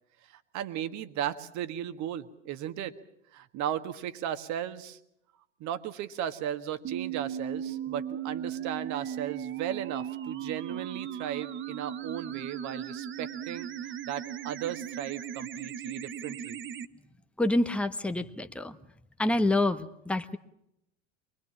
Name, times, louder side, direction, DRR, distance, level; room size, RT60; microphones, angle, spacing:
voice 1, 0.3-2.9 3.3-5.0 5.6-16.6, right 10 dB, 50° right, 10 dB, 1.7 m, -36 dB
sound 1, 6.8-16.9, right 9 dB, 35° right, 1.1 m, -37 dB
voice 2, 17.4-18.8 19.2-20.4, left 2 dB, 5° left, 9 dB, 1.1 m, -27 dB
23.5 x 22.0 x 7.3 m, 0.79 s
hypercardioid pair, 85°, 37 cm